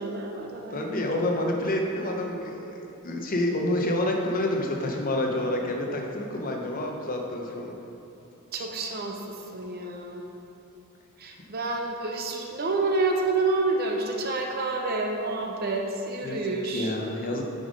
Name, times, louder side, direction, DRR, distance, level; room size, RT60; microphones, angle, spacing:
voice 1, 0.0-1.0 8.5-10.2 11.2-17.0, right 3 dB, 50° right, 1 dB, 0.8 m, -29 dB
voice 2, 0.7-7.7 16.2-16.4 16.7-17.5, left 1 dB, 40° left, 1 dB, 0.9 m, -28 dB
7.7 x 5.3 x 5.2 m, 2.9 s
head